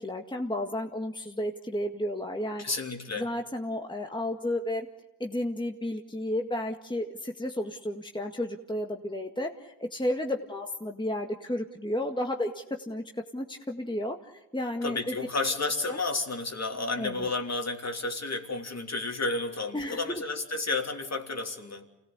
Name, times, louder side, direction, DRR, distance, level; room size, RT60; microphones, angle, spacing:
voice 1, 0.0-2.6 3.2-4.9 5.2-13.0 13.3-15.1 15.9-16.0 17.0-17.3 19.7-20.2, left 1 dB, 10° left, 3 dB, 1.9 m, -32 dB
voice 2, 2.6-3.3 14.8-21.9, left 3 dB, 40° left, 4 dB, 3.3 m, -31 dB
26.5 x 17.5 x 8.3 m, 0.94 s
supercardioid pair, 45°, 40 cm